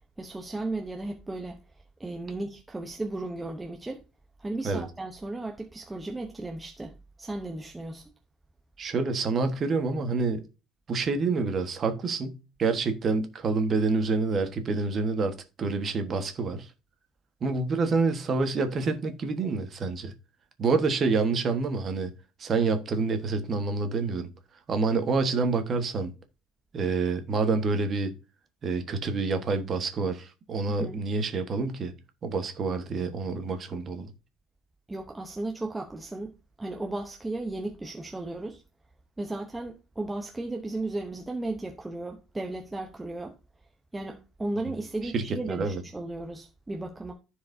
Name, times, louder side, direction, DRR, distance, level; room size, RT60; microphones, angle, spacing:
voice 1, 0.2-1.6 2.0-4.0 4.4-8.1 30.8-31.0 34.9-36.3 36.6-38.6 39.2-43.4 43.9-47.1, right 2 dB, 10° right, 0.8 m, -35 dB
voice 2, 8.8-10.4 10.9-16.7 17.4-20.1 20.6-22.1 22.4-24.3 24.7-26.1 26.7-28.1 28.6-31.9 32.2-34.1 44.7-44.8 45.0-45.8, right 4 dB, 30° right, 1.3 m, -27 dB
14.5 x 4.8 x 2.7 m
cardioid pair, 170°, 0 cm